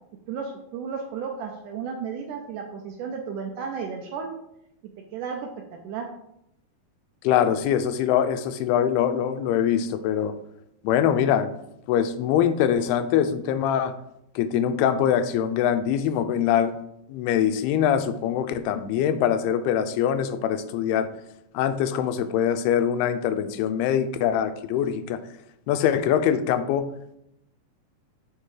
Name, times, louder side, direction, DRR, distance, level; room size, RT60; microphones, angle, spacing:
voice 1, 0.3-4.3 5.1-5.5 5.8-6.1, right 6 dB, 80° right, 2 dB, 1.9 m, -33 dB
voice 2, 7.2-10.4 10.8-11.5 11.9-14.0 14.4-16.8 17.1-21.1 21.5-25.2 25.7-26.9, left 9 dB, 90° left, 10 dB, 2.6 m, -23 dB
6.8 x 5.9 x 4.8 m, 0.79 s
omnidirectional pair, 4.4 m